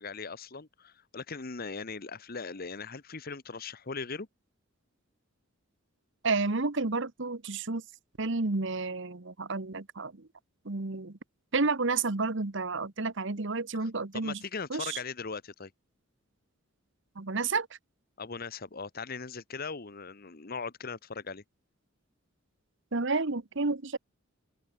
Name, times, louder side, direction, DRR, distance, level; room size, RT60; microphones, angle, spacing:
voice 1, 0.0-4.3 13.7-15.7 18.2-21.4, left 4 dB, 45° left, 1.1 m, -39 dB
voice 2, 6.2-7.8 8.2-10.1 10.6-11.2 11.5-14.4 14.7-15.0 17.2-17.7 22.9-24.0, right 3 dB, 60° right, 1.2 m, -30 dB
open air
head